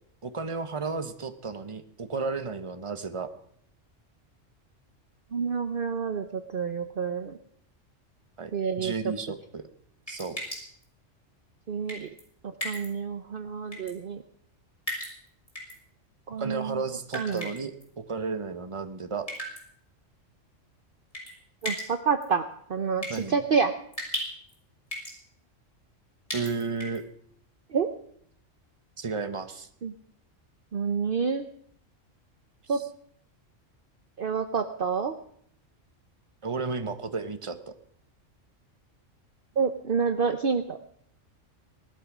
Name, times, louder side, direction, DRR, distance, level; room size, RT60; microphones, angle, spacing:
voice 1, 0.2-3.3 8.4-8.5 8.8-9.6 10.1-10.4 16.4-17.7 18.0-19.3 23.1-23.4 26.3-27.0 29.0-29.7 32.7-32.8 36.4-37.7, right 4 dB, 25° right, 9 dB, 1.1 m, -33 dB
voice 2, 5.3-7.4 8.5-9.1 11.7-12.1 12.4-14.2 16.3-16.8 17.1-17.5 21.6-22.4 22.7-23.7 27.7-27.9 29.8-29.9 30.7-31.5 32.7-32.8 34.2-35.1 39.6-40.8, right 5 dB, 50° right, 8 dB, 0.9 m, -28 dB
sound 1, 10.1-10.8 11.9-12.2 12.6-12.9 13.7-13.9 14.9-15.7 17.1-17.8 19.3-19.6 21.1-21.3 21.6-21.9 22.2-22.3 23.0-23.2 23.9-24.6 24.9-25.2 26.3-27.0, equal, 25° left, 5.9 m, -35 dB
19.0 x 12.5 x 6.1 m, 0.66 s
omnidirectional pair, 1.3 m